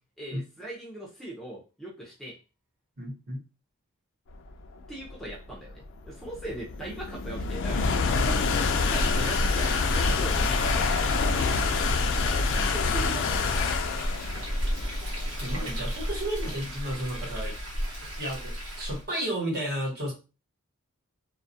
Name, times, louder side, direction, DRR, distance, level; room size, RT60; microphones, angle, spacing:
voice 1, 0.2-2.4 4.9-13.7, right 1 dB, ahead, -3 dB, 0.5 m, -41 dB
voice 2, 3.0-3.4 15.4-17.5 18.2-20.1, right 1 dB, 50° right, -3 dB, 1.1 m, -32 dB
sound 1, 4.7-18.0, left 4 dB, 60° left, 0.3 m, -27 dB
Frying (food), 8.7-19.1, equal, 75° right, 1.1 m, -34 dB
2.3 x 2.1 x 2.6 m, 0.31 s
head